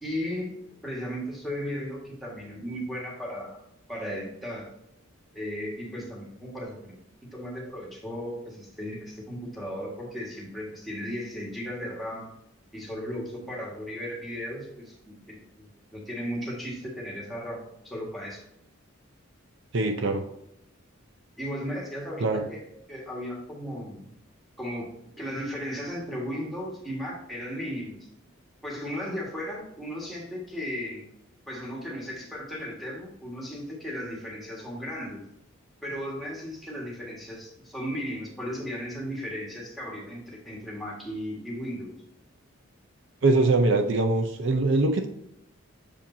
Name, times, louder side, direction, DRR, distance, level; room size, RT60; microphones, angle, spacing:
voice 1, 0.0-0.6 0.8-3.6 3.9-4.7 5.3-7.0 7.3-12.3 12.7-18.4 21.4-22.6 22.9-24.1 24.6-24.9 25.2-28.1 28.6-31.1 31.5-35.2 35.8-41.9, equal, ahead, -4 dB, 1.7 m, -36 dB
voice 2, 19.7-20.2 22.2-22.4 43.2-45.1, right 2 dB, 60° right, 5 dB, 0.6 m, -22 dB
7.0 x 5.0 x 2.7 m, 0.80 s
head